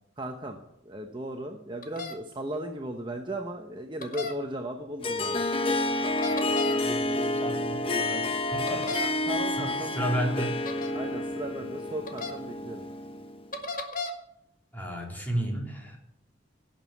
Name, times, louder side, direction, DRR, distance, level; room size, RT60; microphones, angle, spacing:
voice 1, 0.2-5.4 8.7-9.0 9.3-10.2 10.9-12.8, right 1 dB, 25° right, 4 dB, 1.0 m, -36 dB
sound 1, 1.8-2.1 4.0-4.3 6.0-6.8 8.7-9.1 10.6-10.9 12.1-12.3 13.5-14.1, left 3 dB, 45° left, 1.7 m, -34 dB
Harp, 5.0-13.5, left 2 dB, 30° left, 1.1 m, -29 dB
voice 2, 6.6-8.9 9.5-10.6 14.7-16.0, right 1 dB, 10° left, 0 dB, 3.2 m, -33 dB
17.0 x 7.2 x 8.4 m, 0.83 s
head